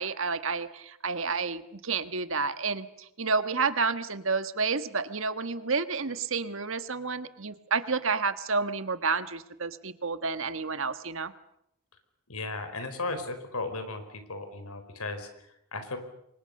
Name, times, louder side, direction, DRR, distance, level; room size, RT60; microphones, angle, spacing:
voice 1, 0.0-11.3, right 4 dB, 65° right, 11 dB, 1.5 m, -30 dB
voice 2, 12.3-16.0, left 3 dB, 90° left, 9 dB, 4.6 m, -36 dB
29.5 x 24.0 x 6.6 m, 0.77 s
head